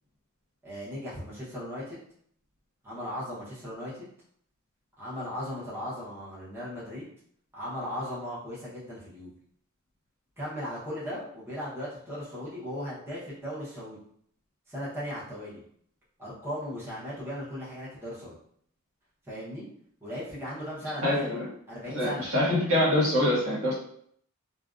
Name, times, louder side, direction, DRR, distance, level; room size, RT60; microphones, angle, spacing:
voice 1, 0.6-2.0 2.8-4.1 5.0-7.1 7.5-9.3 10.4-14.0 14.7-15.6 16.2-18.4 19.2-19.7 20.0-21.4 21.7-22.3, equal, 10° right, -9 dB, 0.8 m, -37 dB
voice 2, 21.0-21.5 21.9-23.7, left 1 dB, 80° right, -6 dB, 1.2 m, -25 dB
2.5 x 2.2 x 2.4 m, 0.65 s
head